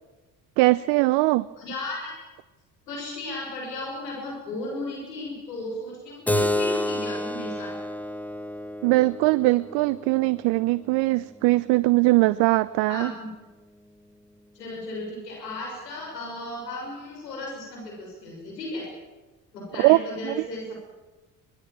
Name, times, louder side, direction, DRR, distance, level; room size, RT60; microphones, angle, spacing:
voice 1, 0.6-1.4 8.8-13.1 19.8-20.0 20.2-20.4, right 21 dB, 55° right, 17 dB, 0.8 m, -21 dB
voice 2, 1.6-2.1 2.9-7.7 12.9-13.3 14.5-18.9 19.5-20.7, left 2 dB, 80° left, -1 dB, 6.6 m, -35 dB
Keyboard (musical), 6.3-11.4, left 1 dB, 5° left, 1.7 m, -30 dB
24.0 x 19.0 x 9.0 m, 1.2 s
figure-of-eight pair, 55°, 49 cm